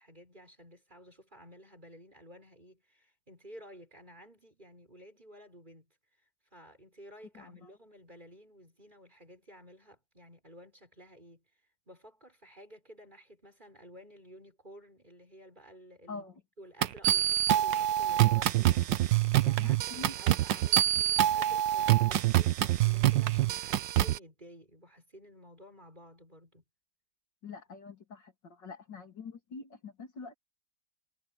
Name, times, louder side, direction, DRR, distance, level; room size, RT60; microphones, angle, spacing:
voice 1, 0.0-6.0 6.5-11.4 11.9-16.3 16.6-19.1 19.4-26.6, equal, 20° right, 7.1 m, -53 dB
voice 2, 7.4-7.7 16.1-16.4 19.6-20.2 27.4-30.4, left 4 dB, 65° left, 3.8 m, -45 dB
sound 1, 16.8-24.2, right 13 dB, 70° right, 1.5 m, -26 dB
omnidirectional pair, 2.1 m